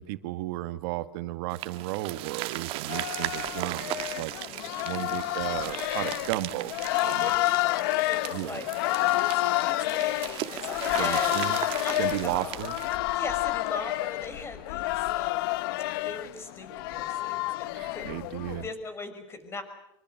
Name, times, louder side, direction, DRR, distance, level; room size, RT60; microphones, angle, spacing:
voice 1, 0.0-7.4 8.3-8.6 11.0-11.6 12.0-12.8 17.7-18.7, right 16 dB, 65° right, 11 dB, 2.0 m, -34 dB
sound 1, 1.5-13.0, right 16 dB, 45° right, 1.7 m, -37 dB
sound 2, 2.9-18.7, left 18 dB, 65° left, 0.9 m, -29 dB
voice 2, 4.5-5.3 7.2-12.6 13.1-15.6 15.9-19.6, left 4 dB, 20° left, 9 dB, 5.7 m, -40 dB
26.0 x 24.0 x 7.9 m, 0.80 s
supercardioid pair, 145°, 13 cm